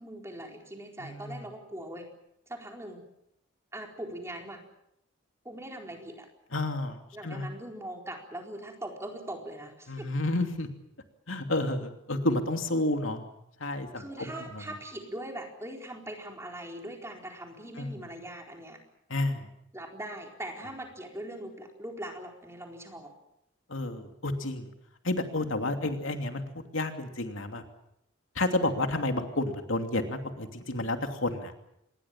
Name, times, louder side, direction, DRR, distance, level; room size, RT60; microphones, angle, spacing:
voice 1, 0.0-2.1 2.5-3.0 3.7-4.6 5.4-6.3 7.1-10.1 14.0-18.8 19.7-23.1 25.4-25.5, right 1 dB, 15° right, 2 dB, 4.3 m, -41 dB
voice 2, 1.0-1.4 6.5-7.5 9.9-10.7 11.3-13.3 13.6-14.3 17.8-18.0 19.1-19.5 23.7-24.7 25.0-27.6 28.3-31.7, left 2 dB, 75° left, 5 dB, 2.8 m, -30 dB
27.0 x 21.0 x 7.4 m, 0.79 s
head